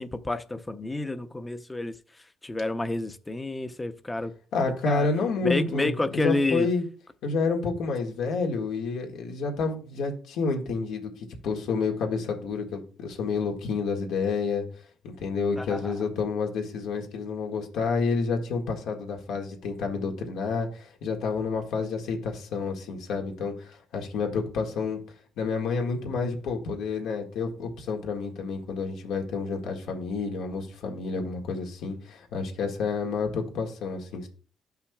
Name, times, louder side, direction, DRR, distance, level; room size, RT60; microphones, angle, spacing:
voice 1, 0.0-1.9 2.4-4.3 4.8-5.1 5.5-6.7 15.6-15.9, left 2 dB, 15° left, 0.7 m, -29 dB
voice 2, 4.5-6.8 7.2-14.7 15.0-25.0 25.4-34.3, left 4 dB, 85° left, 1.8 m, -29 dB
12.5 x 5.7 x 2.3 m
cardioid pair, 90°, 0 cm